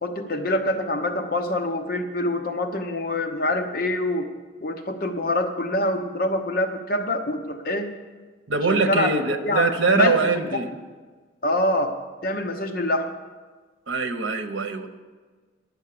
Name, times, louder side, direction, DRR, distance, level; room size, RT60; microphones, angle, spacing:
voice 1, 0.0-4.3 4.6-7.9 8.7-9.1 9.4-10.3 11.4-13.1, left 1 dB, 50° left, 5 dB, 0.9 m, -25 dB
voice 2, 8.5-10.7 13.9-14.9, right 4 dB, 85° right, 8 dB, 0.9 m, -23 dB
11.0 x 6.3 x 8.4 m, 1.4 s
head